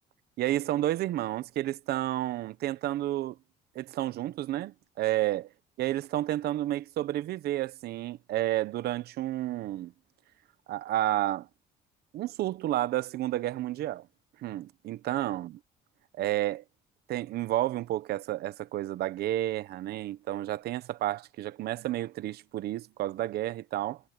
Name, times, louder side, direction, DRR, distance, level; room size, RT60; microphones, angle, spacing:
voice 1, 0.4-3.4 3.7-5.5 5.8-9.9 10.7-11.5 12.1-14.1 14.4-15.6 16.1-16.6 17.1-24.0, right 14 dB, 70° right, 0.9 m, -31 dB
cardioid pair, 110°, 17 cm